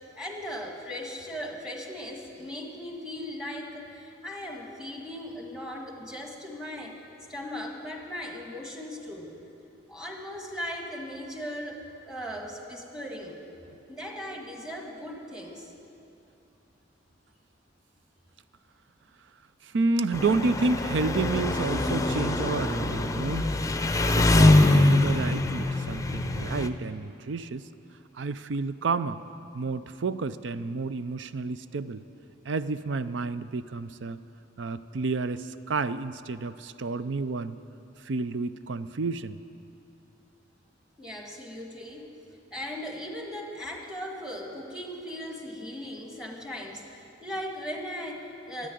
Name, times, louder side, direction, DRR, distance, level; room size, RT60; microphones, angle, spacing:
voice 1, 0.2-7.0 7.3-9.3 9.9-13.4 13.9-15.7 41.0-42.0 42.5-48.7, left 1 dB, 5° right, 1 dB, 1.7 m, -38 dB
voice 2, 19.6-23.5 24.1-27.6 28.1-29.2 29.5-32.0 32.4-34.2 34.6-37.5 38.0-39.4, right 3 dB, 70° right, 13 dB, 0.5 m, -30 dB
Engine, 20.1-26.7, left 2 dB, 15° left, 0.6 m, -23 dB
14.0 x 9.6 x 9.2 m, 2.9 s
head